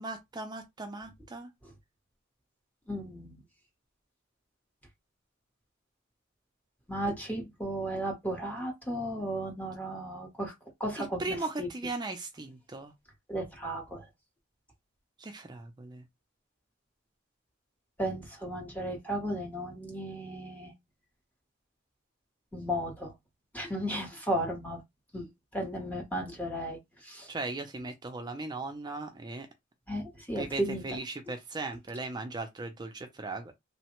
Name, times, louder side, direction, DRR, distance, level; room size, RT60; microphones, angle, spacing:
voice 1, 0.0-1.5 11.0-12.9 15.2-16.0 27.3-29.5 30.3-33.5, right 3 dB, 20° right, 0.4 m, -38 dB
voice 2, 2.9-3.4 6.9-10.5 10.8-11.7 13.3-14.1 18.0-20.7 22.5-23.1 23.5-24.8 25.1-27.3 29.9-30.8, right 1 dB, 10° left, 0.8 m, -35 dB
3.1 x 2.1 x 2.9 m
head